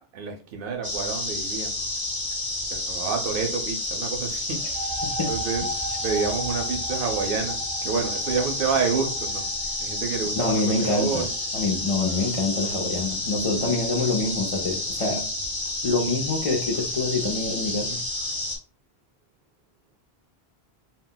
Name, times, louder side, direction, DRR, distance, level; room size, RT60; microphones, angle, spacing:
voice 1, 0.1-1.8 2.7-4.9 5.3-5.6 6.0-9.5 9.8-11.3, right 5 dB, 65° right, 0.7 m, -29 dB
sound 1, 0.8-18.6, left 2 dB, 25° left, 0.8 m, -30 dB
sound 2, 4.5-12.0, right 1 dB, 30° right, 0.4 m, -37 dB
voice 2, 10.4-11.3 11.5-15.2 15.8-18.0, left 3 dB, 50° left, 0.4 m, -26 dB
2.2 x 2.1 x 3.7 m
omnidirectional pair, 1.1 m